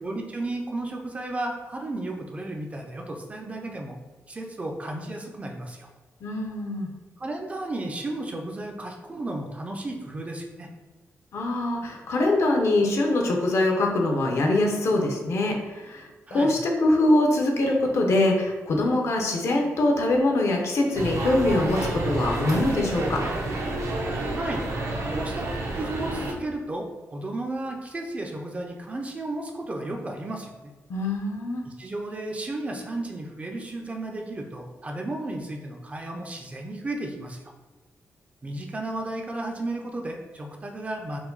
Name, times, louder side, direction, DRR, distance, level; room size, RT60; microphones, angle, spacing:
voice 1, 0.0-4.0 4.3-5.9 7.2-10.7 16.3-16.5 24.3-24.7 25.1-25.5 25.7-30.5 31.6-37.4 38.4-41.2, right 2 dB, 25° right, 2 dB, 0.4 m, -33 dB
voice 2, 6.2-6.9 11.3-23.2 30.9-31.6, left 2 dB, 60° left, 1 dB, 0.7 m, -23 dB
sound 1, 20.9-26.3, right 2 dB, 70° right, 0.7 m, -29 dB
4.6 x 2.2 x 3.9 m, 1.3 s
wide cardioid pair, 160°, 5 cm